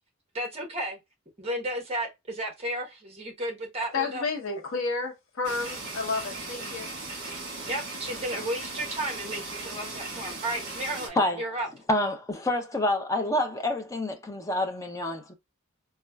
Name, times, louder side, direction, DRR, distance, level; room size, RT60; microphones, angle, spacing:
voice 1, 0.3-1.0 1.4-4.2 7.3-11.7, right 1 dB, 30° right, 0.9 m, -33 dB
voice 2, 3.9-6.9, left 4 dB, 70° left, 0.8 m, -31 dB
sound 1, 5.4-11.1, right 3 dB, 45° right, 1.3 m, -37 dB
voice 3, 11.9-15.3, left 1 dB, 15° left, 0.4 m, -27 dB
4.2 x 2.3 x 2.2 m
head